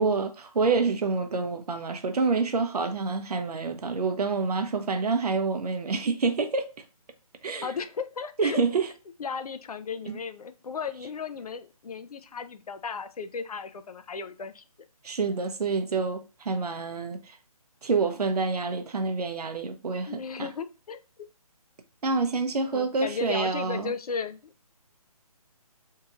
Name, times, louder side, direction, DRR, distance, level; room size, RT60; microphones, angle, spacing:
voice 1, 0.0-6.7 7.4-7.7 8.4-8.9 10.1-10.2 15.0-17.2 17.8-20.5 22.0-23.9, right 4 dB, 85° right, 0.5 m, -27 dB
voice 2, 7.6-8.6 9.2-14.6 20.1-21.0 22.7-24.5, left 5 dB, 75° left, 0.4 m, -35 dB
2.9 x 2.7 x 2.4 m
figure-of-eight pair, 155°, 19 cm